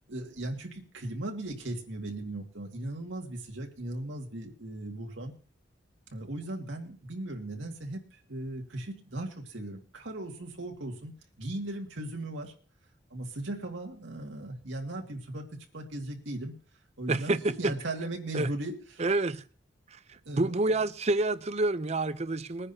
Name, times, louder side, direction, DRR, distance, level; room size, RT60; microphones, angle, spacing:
voice 1, 0.1-5.3 6.1-11.1 11.4-12.5 13.1-15.5 15.7-16.5 17.0-19.0 20.3-20.6, right 1 dB, 90° right, 2.2 m, -37 dB
voice 2, 17.1-17.7 18.3-18.5 19.0-19.4 19.9-20.0 20.3-22.7, right 2 dB, 35° right, 0.7 m, -28 dB
21.5 x 10.0 x 2.8 m
head